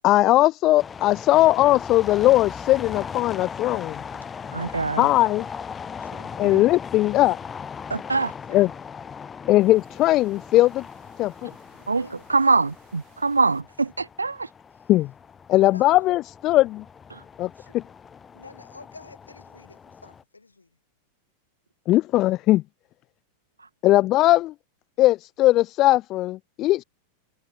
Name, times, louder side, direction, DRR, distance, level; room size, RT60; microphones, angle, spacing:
voice 1, 0.0-4.0 5.0-5.5 6.4-7.4 8.5-8.7 9.5-10.8 11.2-11.5 14.9-15.1 15.5-16.8 17.4-17.8 21.9-22.6 23.8-24.5 25.0-26.8, left 16 dB, 35° left, 0.3 m, -19 dB
sound 1, 0.8-20.2, left 6 dB, 20° left, 1.7 m, -39 dB
voice 2, 4.5-5.1 6.4-6.6 7.9-8.3 11.9-14.5 17.1-17.2, right 3 dB, 80° right, 0.4 m, -24 dB
sound 2, 9.6-13.6, right 40 dB or more, 45° right, 6.4 m, -60 dB
voice 3, 15.7-16.1 18.3-20.8, left 3 dB, 80° left, 2.1 m, -49 dB
figure-of-eight pair, 90°, 0 cm